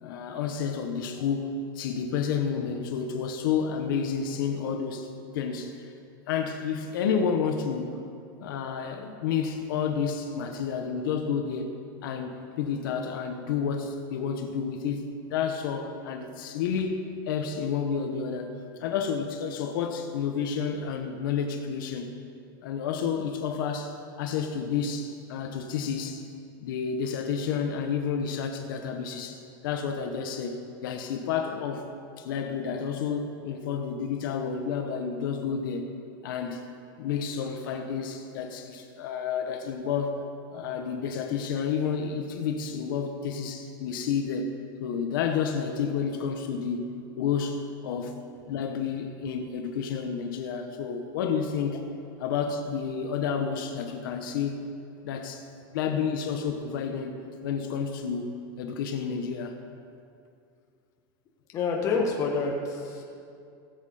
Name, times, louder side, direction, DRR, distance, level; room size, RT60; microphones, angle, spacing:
voice 1, 0.0-5.1 5.3-5.9 6.3-8.0 8.4-11.7 12.0-17.0 17.3-22.1 22.6-26.2 26.6-31.9 32.2-35.9 36.2-36.7 37.0-40.2 40.5-44.5 44.8-48.2 48.5-51.8 52.2-54.6 55.0-55.4 55.7-59.6, left 6 dB, 70° left, 4 dB, 1.1 m, -30 dB
voice 2, 61.5-63.0, left 4 dB, 25° left, 0 dB, 1.5 m, -27 dB
18.0 x 7.7 x 4.9 m, 2.5 s
supercardioid pair, 170°, 12 cm